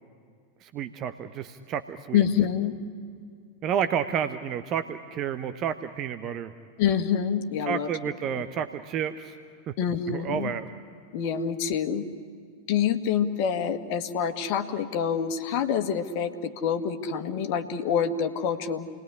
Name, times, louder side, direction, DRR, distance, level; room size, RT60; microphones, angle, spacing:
voice 1, 0.6-2.2 3.6-6.5 7.7-9.4 10.1-10.7, right 8 dB, 35° right, 10 dB, 1.0 m, -30 dB
voice 2, 2.1-2.8 6.8-7.9 9.8-10.5 11.1-12.1 12.7-18.9, left 8 dB, 45° left, 7 dB, 1.8 m, -26 dB
29.0 x 20.0 x 9.9 m, 2.3 s
figure-of-eight pair, 90°, 0 cm